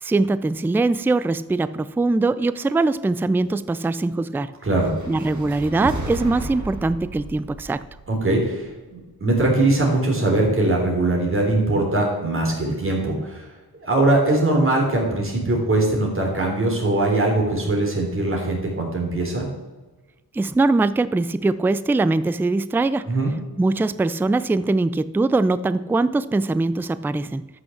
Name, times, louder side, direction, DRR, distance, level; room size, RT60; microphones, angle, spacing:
voice 1, 0.0-4.5 5.1-7.8 20.3-23.2 23.6-27.5, right 3 dB, 5° right, 15 dB, 0.3 m, -22 dB
voice 2, 4.6-4.9 8.1-13.5 13.8-19.5 23.1-23.3, right 2 dB, 35° right, 0 dB, 3.6 m, -21 dB
sound 1, 4.7-9.0, right 2 dB, 50° right, 2.3 m, -34 dB
13.0 x 6.2 x 7.1 m, 1.2 s
wide cardioid pair, 145°, 38 cm